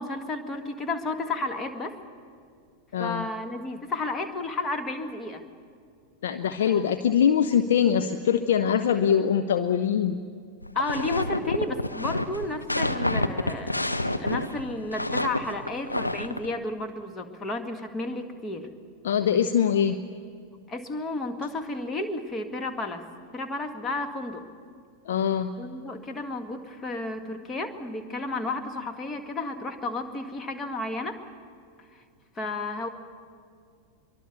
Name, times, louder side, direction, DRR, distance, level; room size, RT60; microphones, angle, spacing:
voice 1, 0.0-2.0 3.0-5.4 6.7-6.9 10.7-13.9 14.2-18.7 20.7-23.0 23.3-24.5 25.6-31.2 32.4-32.9, left 2 dB, 20° left, 6 dB, 1.8 m, -32 dB
voice 2, 2.9-3.3 6.2-10.2 19.0-20.0 25.1-25.5, left 8 dB, 60° left, 9 dB, 0.7 m, -23 dB
sound 1, 10.6-16.5, left 1 dB, 85° left, 0.9 m, -29 dB
24.5 x 23.5 x 7.0 m, 2.1 s
figure-of-eight pair, 90°, 0 cm